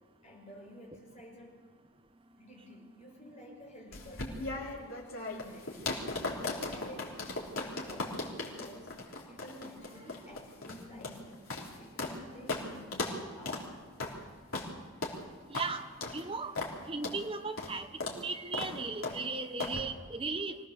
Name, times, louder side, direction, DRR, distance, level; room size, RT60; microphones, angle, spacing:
voice 1, 0.2-1.6 2.3-5.9 6.3-8.9 9.3-11.3 11.8-13.7, equal, 30° left, -1 dB, 5.2 m, -51 dB
sound 1, 3.9-12.2 12.5-12.6 12.9-13.2 13.5-13.6 14.0-14.2 14.5-14.7 15.0-15.2 15.5-15.7 16.0-16.2 16.6-16.7 17.0-17.2 17.6-17.7 18.0-18.2 18.5-18.7 19.0-19.2 19.6-19.8, left 3 dB, 65° left, 3.6 m, -37 dB
voice 2, 15.5-16.6 16.9-17.9 18.2-20.6, right 3 dB, 25° right, 6 dB, 1.0 m, -36 dB
24.5 x 17.5 x 6.9 m, 1.5 s
head